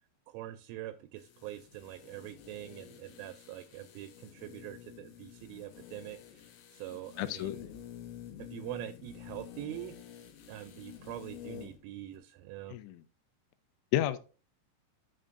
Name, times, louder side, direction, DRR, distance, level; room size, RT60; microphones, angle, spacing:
voice 1, 0.3-6.4 6.7-7.6 8.4-10.0 10.5-12.8, right 14 dB, 85° right, 3.0 m, -44 dB
sound 1, 1.2-11.8 12.1-12.2, left 11 dB, 70° left, 2.4 m, -50 dB
voice 2, 7.2-7.7 12.7-13.0 13.9-14.2, left 13 dB, 85° left, 3.1 m, -31 dB
9.7 x 7.6 x 2.5 m
omnidirectional pair, 5.6 m